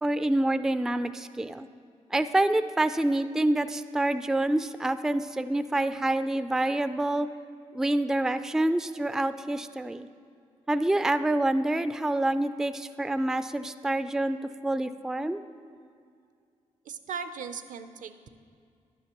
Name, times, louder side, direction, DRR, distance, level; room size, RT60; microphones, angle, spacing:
voice 1, 0.0-1.7 2.1-7.3 7.7-10.1 10.7-14.4 14.6-15.4, right 1 dB, 5° right, 12 dB, 0.3 m, -27 dB
voice 2, 16.9-18.3, right 6 dB, 65° right, 10 dB, 0.5 m, -38 dB
11.0 x 9.5 x 2.9 m, 2.3 s
supercardioid pair, 50°, 14 cm